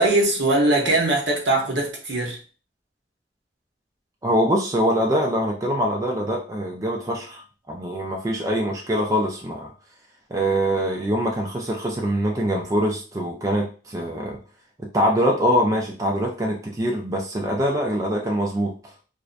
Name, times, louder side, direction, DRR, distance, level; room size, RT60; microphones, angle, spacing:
voice 1, 0.0-2.4, right 2 dB, 70° right, -1 dB, 0.8 m, -21 dB
voice 2, 4.2-7.4 7.7-9.7 10.3-14.4 14.8-18.7, equal, 20° right, 0 dB, 0.3 m, -23 dB
2.5 x 2.1 x 2.4 m, 0.37 s
head